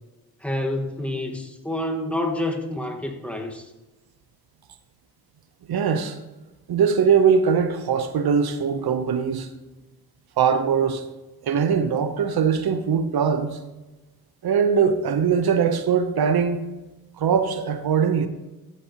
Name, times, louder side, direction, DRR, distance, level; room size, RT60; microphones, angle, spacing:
voice 1, 0.4-3.7, left 1 dB, 5° left, 1.5 m, -28 dB
voice 2, 5.7-6.2 6.7-9.5 10.4-11.1 11.4-13.6 14.4-16.6 17.2-18.3, right 6 dB, 80° right, 0.8 m, -21 dB
14.5 x 8.5 x 2.9 m
cardioid pair, 75°, 37 cm